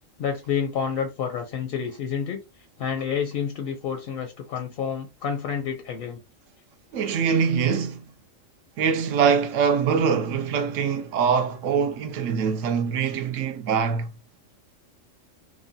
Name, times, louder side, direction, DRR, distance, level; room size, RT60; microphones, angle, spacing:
voice 1, 0.2-6.2, left 7 dB, 65° left, 0.6 m, -29 dB
voice 2, 6.9-8.0 8.8-14.1, right 6 dB, 75° right, 0.9 m, -23 dB
3.2 x 2.2 x 2.6 m
omnidirectional pair, 1.4 m